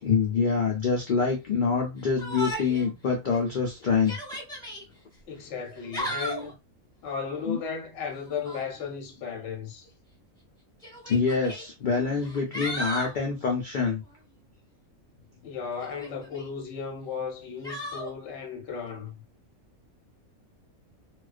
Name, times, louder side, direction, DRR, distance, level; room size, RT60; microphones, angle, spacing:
voice 1, 0.0-4.2 7.5-7.6 11.1-14.0, left 5 dB, 85° left, 0.4 m, -26 dB
Yell, 2.2-2.9 3.3-3.4 3.9-4.8 5.7-6.5 8.3-8.7 9.9-10.0 10.8-11.6 12.2-13.2 15.8-16.5 17.6-18.1, right 1 dB, 5° left, 1.1 m, -35 dB
voice 2, 5.3-6.6 7.0-9.8 15.4-19.1, left 6 dB, 60° left, 0.8 m, -35 dB
2.3 x 2.2 x 2.4 m
omnidirectional pair, 1.5 m